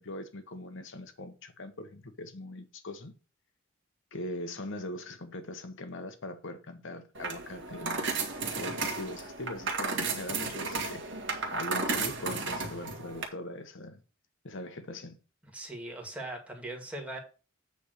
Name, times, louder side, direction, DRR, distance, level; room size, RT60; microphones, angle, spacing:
voice 1, 0.0-3.1 4.1-8.1 8.5-11.0 11.5-14.0 14.4-15.2, left 1 dB, 65° left, 1.2 m, -41 dB
sound 1, 7.1-13.3, right 4 dB, 60° right, 1.8 m, -33 dB
voice 2, 15.4-17.2, right 1 dB, 5° right, 2.1 m, -40 dB
8.5 x 3.6 x 6.6 m
head